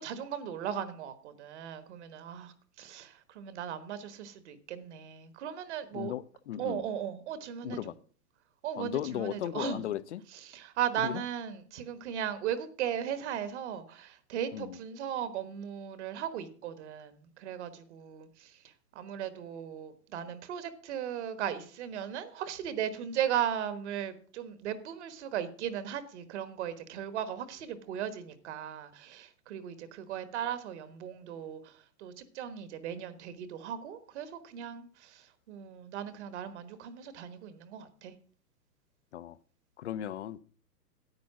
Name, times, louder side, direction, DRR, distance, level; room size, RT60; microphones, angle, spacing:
voice 1, 0.0-6.1 6.6-7.9 8.6-9.8 10.3-38.1, right 9 dB, 45° right, 1.3 m, -37 dB
voice 2, 5.9-6.8 7.6-7.9 8.8-10.2 11.0-11.2 14.5-14.8 39.1-39.4 39.8-40.4, left 12 dB, 45° left, 0.5 m, -36 dB
10.5 x 8.2 x 6.0 m
hypercardioid pair, 155°, 49 cm